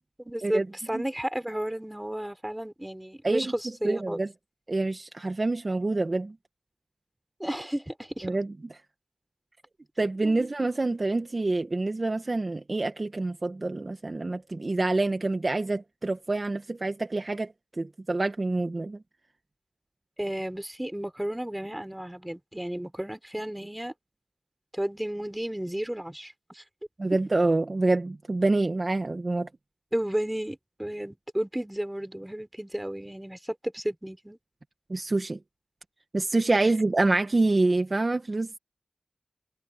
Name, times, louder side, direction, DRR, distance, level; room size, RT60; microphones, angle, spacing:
voice 1, 0.2-4.2 7.4-8.4 10.2-10.4 20.2-23.9 24.7-26.6 29.9-34.4, right 1 dB, 15° right, 5.8 m, -33 dB
voice 2, 3.8-4.3 4.7-6.3 8.2-8.5 10.0-19.0 27.0-29.5 34.9-35.4 36.1-38.6, right 2 dB, 50° right, 1.6 m, -26 dB
cardioid pair, 45°, 0 cm